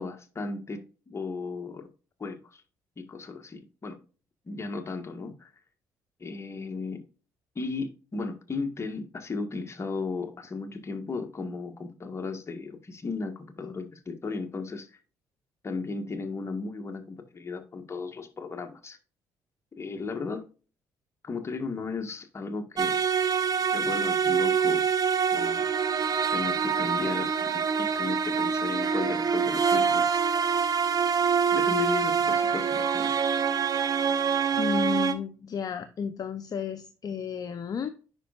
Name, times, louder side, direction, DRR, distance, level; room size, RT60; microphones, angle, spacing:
voice 1, 0.0-1.9 2.2-2.6 3.0-4.0 4.4-5.5 6.2-7.0 7.5-14.9 15.6-19.0 19.7-20.5 21.2-23.0 23.7-24.9 25.3-25.7 26.3-30.0 31.5-33.2, left 4 dB, 35° left, 1.6 m, -35 dB
sound 1, 22.8-35.1, right 6 dB, 50° right, 0.9 m, -25 dB
voice 2, 34.5-37.9, left 7 dB, 50° left, 0.7 m, -32 dB
9.8 x 5.3 x 2.5 m
supercardioid pair, 60°, 8 cm